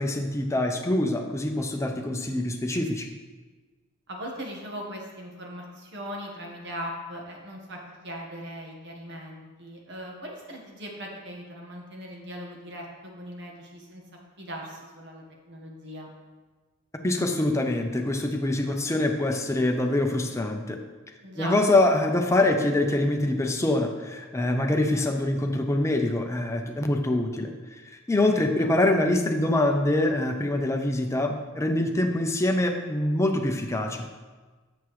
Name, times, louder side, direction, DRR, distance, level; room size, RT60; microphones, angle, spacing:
voice 1, 0.0-3.1 17.0-20.8 21.4-27.5 27.8-34.1, left 1 dB, 15° left, 4 dB, 0.5 m, -24 dB
voice 2, 4.1-14.0 14.4-16.1 21.2-21.5 28.2-28.7, equal, 55° right, 0 dB, 1.3 m, -39 dB
7.1 x 6.5 x 3.1 m, 1.3 s
head